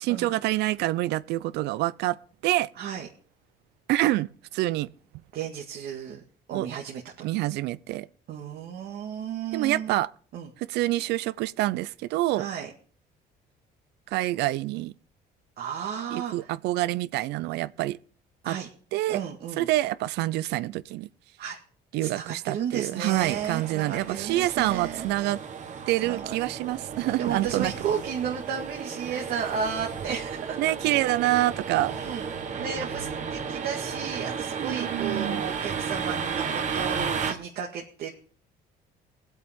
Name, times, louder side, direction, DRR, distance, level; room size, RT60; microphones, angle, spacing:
voice 1, 0.1-2.2 2.4-2.7 3.9-4.9 6.5-6.7 7.2-8.1 9.5-10.1 10.6-12.5 14.1-14.9 16.1-18.0 18.5-18.6 18.9-19.2 19.6-21.1 21.9-25.4 25.9-27.7 30.6-31.9 34.6-35.4, right 16 dB, 85° right, 0.6 m, -26 dB
voice 2, 2.8-3.1 5.3-6.2 6.5-7.0 8.3-9.9 10.3-10.5 12.3-12.7 15.6-16.5 18.4-18.7 19.1-19.7 21.4-21.6 22.0-25.1 26.0-26.3 27.0-30.7 31.8-38.1, right 7 dB, 65° right, 2.0 m, -33 dB
sound 1, 23.1-37.3, right 6 dB, 45° right, 1.6 m, -34 dB
20.5 x 8.2 x 3.7 m
cardioid pair, 110°, 17 cm